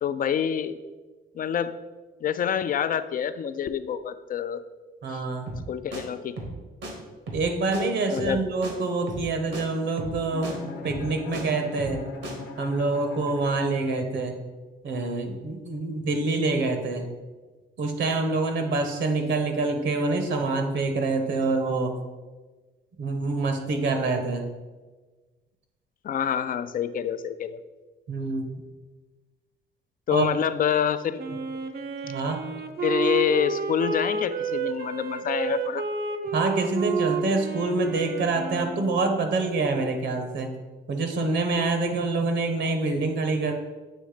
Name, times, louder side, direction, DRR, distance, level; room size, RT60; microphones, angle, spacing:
voice 1, 0.0-0.8 1.4-1.7 2.2-4.6 5.1-5.2 5.7-6.4 8.1-8.4 26.0-27.6 30.1-31.2 32.8-35.8, left 8 dB, 45° left, 12 dB, 0.4 m, -26 dB
voice 2, 5.0-5.5 7.3-12.0 12.6-14.3 14.8-17.1 17.8-21.9 23.0-24.5 28.1-28.5 30.1-30.3 32.0-32.4 36.3-40.5 40.9-43.5, right 3 dB, 70° right, 6 dB, 1.0 m, -26 dB
sound 1, 5.5-5.7 5.9-6.0 6.4-6.6 6.8-6.9 7.3-7.5 7.7-7.8 8.2-8.4 8.6-8.7 9.1-9.3 9.5-9.6 10.0-10.2 10.4-10.5 10.9-11.4 11.8-12.0 12.2-12.3, right 1 dB, 90° right, 1.5 m, -35 dB
Bowed string instrument, 10.3-14.4, left 4 dB, 60° left, 0.9 m, -39 dB
Wind instrument woodwind instrument, 31.2-39.3, right 4 dB, 55° right, 0.6 m, -31 dB
7.7 x 3.1 x 5.0 m, 1.3 s
cardioid pair, 90°, 20 cm